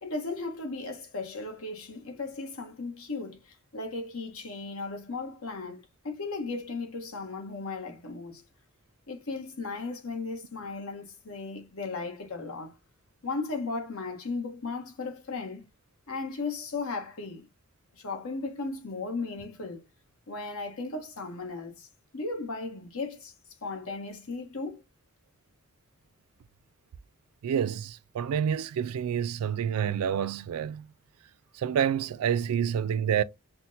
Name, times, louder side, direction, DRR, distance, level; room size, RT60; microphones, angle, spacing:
voice 1, 0.0-8.4 9.1-12.7 13.2-15.6 16.1-17.5 17.9-19.8 20.3-21.9 22.1-23.3 23.6-24.8, left 3 dB, 75° left, 0.9 m, -36 dB
voice 2, 27.4-30.9 31.5-33.2, right 8 dB, 90° right, 0.3 m, -28 dB
5.7 x 2.1 x 2.6 m
head